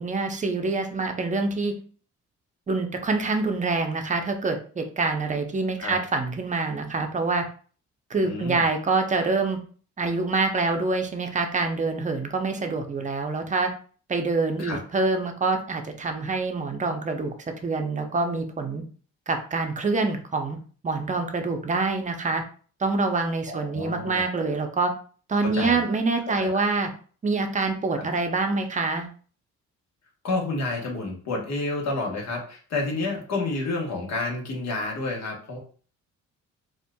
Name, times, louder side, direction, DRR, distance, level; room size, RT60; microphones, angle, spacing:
voice 1, 0.0-1.7 2.7-7.4 8.1-9.6 10.0-13.7 14.1-17.3 17.6-18.8 19.3-20.6 20.8-22.4 22.8-24.9 25.3-26.9 27.2-29.1, right 3 dB, 25° right, 5 dB, 0.6 m, -26 dB
voice 2, 8.2-8.6 14.6-14.8 23.5-24.2 25.4-25.8 26.4-26.6 28.0-28.1 30.2-35.6, left 2 dB, 60° left, 0 dB, 1.2 m, -30 dB
4.2 x 2.4 x 2.2 m, 0.42 s
cardioid pair, 90°, 30 cm